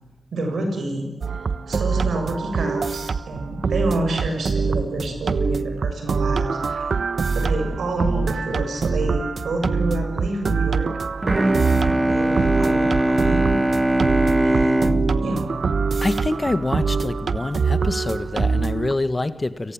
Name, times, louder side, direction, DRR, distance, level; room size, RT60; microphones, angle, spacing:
voice 1, 0.3-6.9 7.3-10.9 11.3-11.4 11.8-13.6 14.4-14.9 15.2-15.4, right 2 dB, 90° right, 4 dB, 7.4 m, -28 dB
sound 1, 1.2-18.9, right 5 dB, 70° right, 1.1 m, -24 dB
Bowed string instrument, 11.2-16.8, right 1 dB, 25° right, 1.9 m, -21 dB
voice 2, 16.0-19.7, left 2 dB, 30° left, 13 dB, 1.7 m, -25 dB
29.5 x 18.5 x 9.0 m, 1.1 s
cardioid pair, 55°, 0 cm